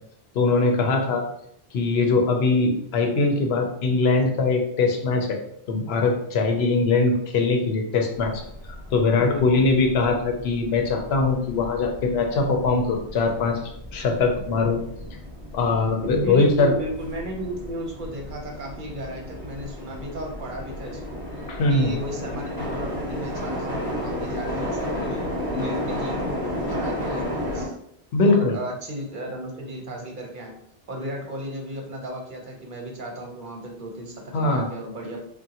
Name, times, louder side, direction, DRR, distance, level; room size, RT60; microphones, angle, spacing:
voice 1, 0.3-1.2 1.7-5.4 5.7-8.4 8.9-13.6 13.9-14.8 15.5-16.7 21.5-21.9 28.1-28.6 34.3-34.7, left 3 dB, 80° left, 3 dB, 0.8 m, -21 dB
sound 1, 8.1-27.7, left 1 dB, 20° right, 1.1 m, -33 dB
voice 2, 9.2-9.7 16.0-21.2 21.7-26.4 26.7-27.7 28.3-30.5 30.9-35.2, equal, 55° right, 1 dB, 0.8 m, -34 dB
3.6 x 2.2 x 2.8 m, 0.70 s
omnidirectional pair, 1.1 m